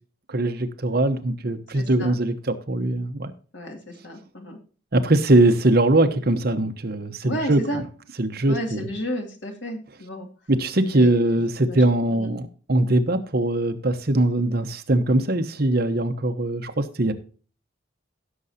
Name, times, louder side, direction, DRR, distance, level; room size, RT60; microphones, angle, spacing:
voice 1, 0.3-3.3 4.9-7.6 8.2-8.9 10.5-17.1, right 1 dB, 55° right, 1.1 m, -21 dB
voice 2, 1.7-2.2 3.5-4.6 7.2-7.8 8.5-10.3 10.9-11.8 12.1-12.4, equal, 70° left, 2.4 m, -33 dB
16.0 x 6.8 x 2.8 m
head